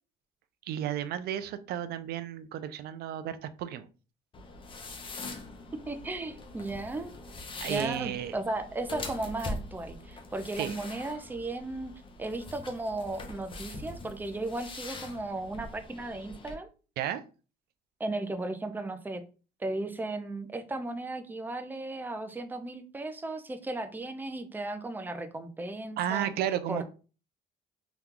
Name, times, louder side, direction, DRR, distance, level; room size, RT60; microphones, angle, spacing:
voice 1, 0.7-3.8 7.6-8.4 10.6-10.8 17.0-17.2 26.0-26.8, right 10 dB, 70° right, 12 dB, 0.4 m, -33 dB
sound 1, 4.3-16.5, left 2 dB, 30° left, 0.7 m, -43 dB
voice 2, 5.9-7.1 7.7-11.9 12.2-16.7 18.0-19.2 19.6-26.3 26.7-26.8, right 2 dB, 10° right, 8 dB, 0.4 m, -35 dB
2.9 x 2.3 x 3.6 m, 0.35 s
cardioid pair, 110°, 17 cm